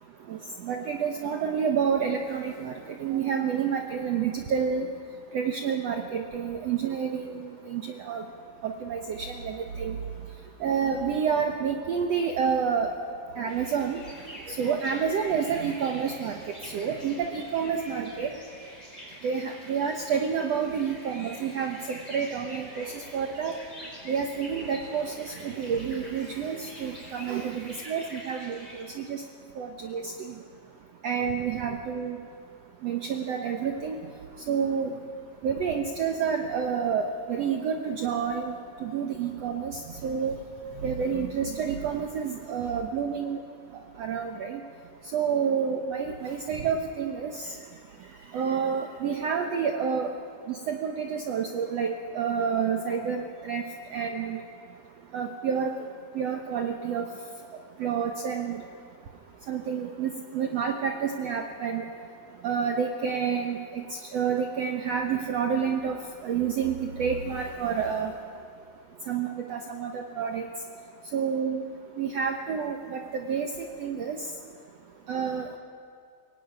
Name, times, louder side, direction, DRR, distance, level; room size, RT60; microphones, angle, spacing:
voice 1, 0.6-2.7 3.0-4.9 5.3-8.2 8.6-10.0 10.6-12.9 13.4-14.0 14.5-16.4 16.7-18.3 19.2-23.5 24.1-28.7 29.0-29.2 29.6-30.1 31.0-32.2 32.8-34.0 34.5-34.9 35.4-38.5 38.8-40.4 40.8-43.4 44.0-44.6 45.1-47.5 48.3-50.1 50.5-53.7 53.9-54.4 55.1-55.7 56.2-57.1 57.8-58.6 59.5-61.8 62.4-63.8 64.1-66.0 66.2-68.1 69.1-70.5 71.1-71.6 72.0-73.5 73.8-74.2 75.1-75.5, right 7 dB, 65° right, 4 dB, 1.7 m, -29 dB
sound 1, 13.5-28.8, equal, 10° left, 4.9 m, -46 dB
23.5 x 18.0 x 9.4 m, 2.2 s
omnidirectional pair, 4.1 m